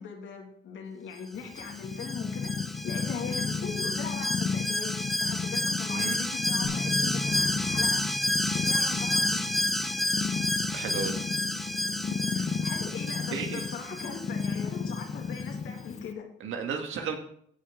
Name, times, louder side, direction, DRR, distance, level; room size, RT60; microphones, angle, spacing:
voice 1, 0.0-2.5 2.8-8.0 8.5-9.4 12.6-16.3, left 6 dB, 75° left, 2 dB, 2.3 m, -40 dB
Purr, 1.3-16.1, left 5 dB, 35° left, 0.7 m, -34 dB
Alarm, 1.6-15.1 15.4-15.5, left 1 dB, ahead, 0.7 m, -31 dB
Bass guitar, 6.6-12.9, left 1 dB, 50° left, 2.4 m, -43 dB
voice 2, 10.7-11.2 12.3-12.5 13.3-13.6 16.4-17.2, right 6 dB, 80° right, 4 dB, 1.8 m, -34 dB
15.5 x 5.5 x 3.8 m, 0.65 s
cardioid pair, 90°, 20 cm